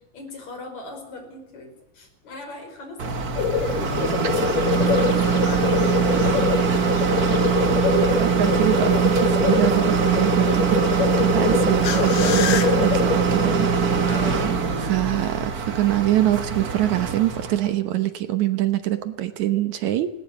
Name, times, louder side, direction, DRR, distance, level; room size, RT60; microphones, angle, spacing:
voice 1, 0.0-4.3 4.6-6.2 14.1-14.5, left 3 dB, 55° left, 4 dB, 6.4 m, -37 dB
sound 1, 3.0-17.7, right 6 dB, 45° right, 1.3 m, -22 dB
sound 2, 3.4-14.4, left 5 dB, 75° left, 2.9 m, -24 dB
voice 2, 8.0-13.7 14.8-20.1, right 13 dB, 70° right, 10 dB, 2.2 m, -24 dB
19.0 x 18.5 x 8.2 m, 0.88 s
omnidirectional pair, 3.8 m